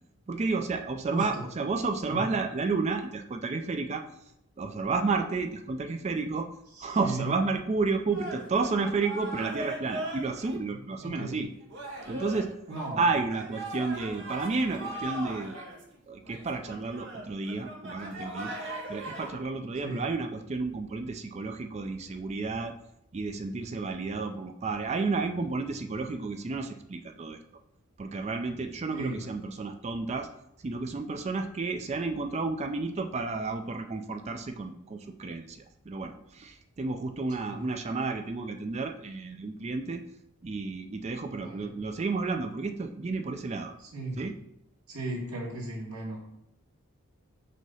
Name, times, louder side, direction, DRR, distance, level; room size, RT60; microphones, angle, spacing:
voice 1, 0.3-4.1 4.6-6.5 6.8-11.5 12.1-12.5 13.0-15.6 16.1-22.7 23.1-27.4 28.0-30.3 30.6-40.0 40.4-43.7 44.2-44.4, right 3 dB, 30° right, 6 dB, 0.3 m, -31 dB
voice 2, 1.1-1.4 2.1-2.2 6.7-7.3 11.0-11.4 12.7-13.0 19.8-20.1 28.9-29.3 37.4-37.7 41.4-41.7 43.8-44.2 44.9-46.2, right 2 dB, 90° right, -2 dB, 1.8 m, -36 dB
sound 1, 8.1-10.6 11.1-11.2 11.7-19.3, right 1 dB, 55° right, 1.1 m, -39 dB
6.1 x 2.8 x 5.5 m, 0.78 s
head